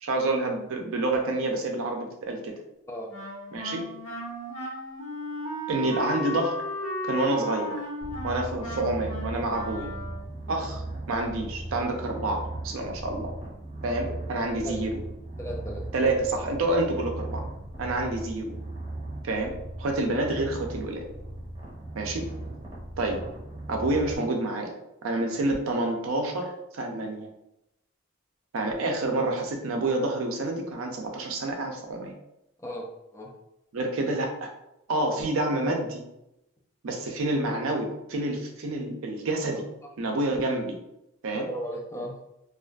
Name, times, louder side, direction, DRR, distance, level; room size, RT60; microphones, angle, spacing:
voice 1, 0.0-2.6 3.5-3.9 5.7-6.6 7.0-7.8 8.2-9.9 10.5-10.8 11.1-13.3 13.8-14.9 15.9-17.4 17.8-18.6 19.2-21.1 22.0-22.3 23.0-23.2 23.7-24.7 25.0-27.3 28.5-32.1 33.7-34.5 34.9-36.0 36.8-39.6 40.0-40.7 41.2-41.5, right 2 dB, 75° right, 2 dB, 0.5 m, -28 dB
Wind instrument woodwind instrument, 3.1-10.4, left 1 dB, 70° left, 0.9 m, -35 dB
Purr, 8.0-24.2, right 1 dB, 30° right, 0.7 m, -38 dB
voice 2, 15.4-15.8 32.6-33.3 41.3-42.1, equal, 15° left, 0 dB, 0.3 m, -36 dB
2.4 x 2.4 x 2.2 m, 0.85 s
head